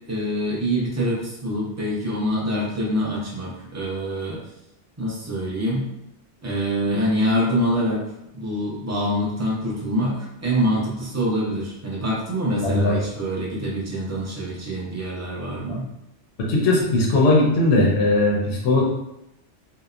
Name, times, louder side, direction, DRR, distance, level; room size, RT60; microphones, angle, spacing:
voice 1, 0.1-4.4 5.0-5.9 6.4-8.0 8.3-15.9, equal, 25° right, -6 dB, 0.4 m, -25 dB
voice 2, 16.4-18.9, left 2 dB, 65° left, -2 dB, 0.8 m, -19 dB
2.8 x 2.0 x 2.4 m, 0.86 s
omnidirectional pair, 1.2 m